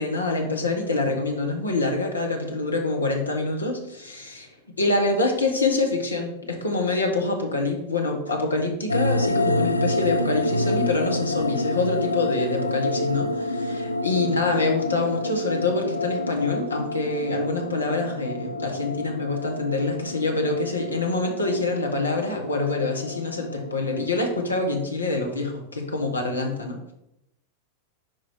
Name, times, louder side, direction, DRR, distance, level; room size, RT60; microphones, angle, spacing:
voice 1, 0.0-4.5 4.8-26.9, left 3 dB, 80° left, 1 dB, 1.2 m, -26 dB
sound 1, 8.9-24.8, left 2 dB, 90° right, 0.4 m, -28 dB
4.8 x 4.5 x 4.6 m, 0.82 s
figure-of-eight pair, 90°, 0 cm